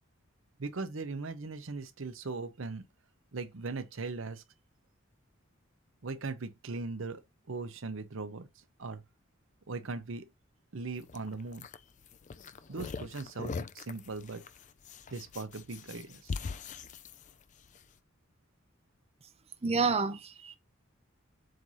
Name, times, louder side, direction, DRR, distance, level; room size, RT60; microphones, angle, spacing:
voice 1, 0.6-2.8 3.3-4.4 6.0-7.2 7.5-8.5 8.8-9.0 9.7-10.3 10.7-11.7 12.7-14.4 15.1-16.3, right 3 dB, 70° right, 0.8 m, -39 dB
sound 1, 11.0-17.8, left 5 dB, 35° left, 0.4 m, -42 dB
voice 2, 19.6-20.6, right 4 dB, 30° right, 0.6 m, -29 dB
7.7 x 2.7 x 5.6 m
head